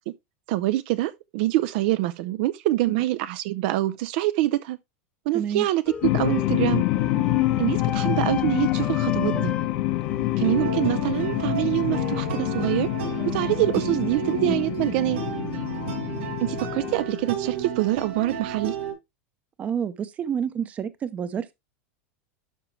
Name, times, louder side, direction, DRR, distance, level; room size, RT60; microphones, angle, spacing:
voice 1, 0.5-4.8 5.3-6.8 7.6-9.5 10.4-12.9 13.3-15.2 16.4-18.8, right 16 dB, 50° right, 0.5 m, -25 dB
voice 2, 5.3-5.7 19.6-21.5, right 7 dB, 20° right, 0.7 m, -29 dB
sound 1, 5.9-17.7, left 6 dB, 15° left, 0.7 m, -37 dB
sound 2, 6.0-16.9, left 17 dB, 50° left, 1.0 m, -26 dB
sound 3, 10.4-18.9, right 7 dB, 75° right, 5.2 m, -33 dB
12.0 x 4.9 x 3.2 m
supercardioid pair, 160°, 7 cm